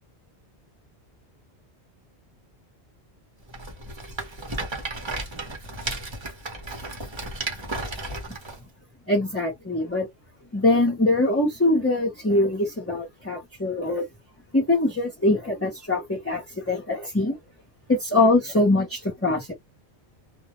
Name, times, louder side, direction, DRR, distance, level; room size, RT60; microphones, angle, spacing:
Rattle, 3.5-8.6, right 2 dB, 30° right, 0.7 m, -34 dB
voice 1, 9.1-10.1 10.5-14.0 14.5-17.4 17.9-19.5, left 2 dB, 15° left, 0.6 m, -23 dB
2.2 x 2.1 x 2.9 m
omnidirectional pair, 1.1 m